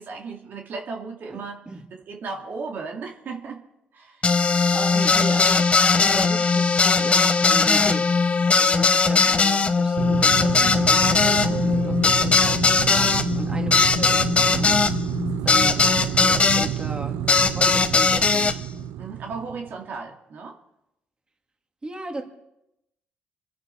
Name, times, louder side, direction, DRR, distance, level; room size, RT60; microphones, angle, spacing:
voice 1, 0.0-1.6 2.1-3.6 3.9-4.3 11.3-11.8 19.0-20.6, right 4 dB, 65° right, 1 dB, 2.3 m, -35 dB
voice 2, 1.3-1.8 4.7-5.7 5.9-8.1 8.5-14.8 15.4-17.2 17.5-18.5 21.8-22.2, right 2 dB, 25° right, 3 dB, 2.7 m, -35 dB
sound 1, 4.2-16.7 17.3-18.5, left 4 dB, 35° left, 1.1 m, -19 dB
sound 2, 10.0-19.8, right 12 dB, 90° right, 0.5 m, -30 dB
26.5 x 10.0 x 4.6 m, 0.84 s
cardioid pair, 80°, 4 cm